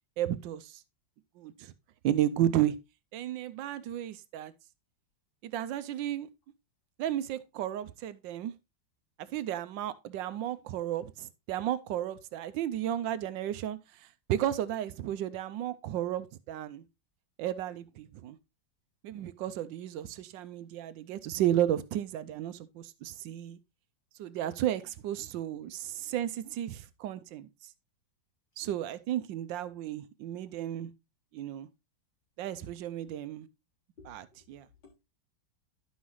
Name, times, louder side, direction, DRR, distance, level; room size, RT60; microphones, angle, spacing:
voice 1, 0.2-0.8 1.4-1.7 2.0-2.7 3.1-4.5 5.4-6.3 7.0-8.5 9.2-16.8 17.4-18.4 19.0-23.6 24.2-27.5 28.6-30.9 31.3-31.7 32.4-33.5 34.1-34.2 34.5-34.7, right 12 dB, 75° right, 1.3 m, -33 dB
voice 2, 24.6-25.0 28.6-29.0 32.6-32.7 34.0-35.0, left 4 dB, 70° left, 4.4 m, -58 dB
11.0 x 5.6 x 3.1 m
omnidirectional pair, 2.1 m